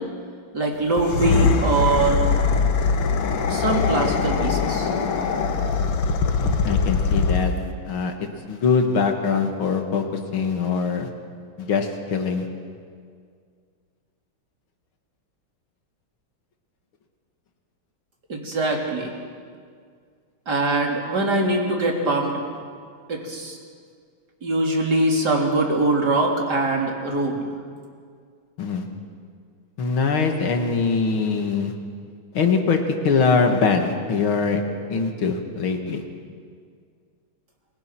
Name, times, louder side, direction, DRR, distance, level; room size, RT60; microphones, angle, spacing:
voice 1, 0.5-2.2 3.5-4.9 18.3-19.1 20.5-22.3 23.1-23.6 24.4-27.5, right 2 dB, 50° right, 0 dB, 4.1 m, -22 dB
sound 1, 0.9-7.7, left 5 dB, 85° left, 2.4 m, -22 dB
voice 2, 6.4-7.5 7.8-11.1 11.6-12.5 28.6-28.9 29.8-31.7 32.3-34.6 34.9-36.0, left 5 dB, 70° left, 4 dB, 2.9 m, -22 dB
29.5 x 23.5 x 6.2 m, 2.1 s
omnidirectional pair, 2.4 m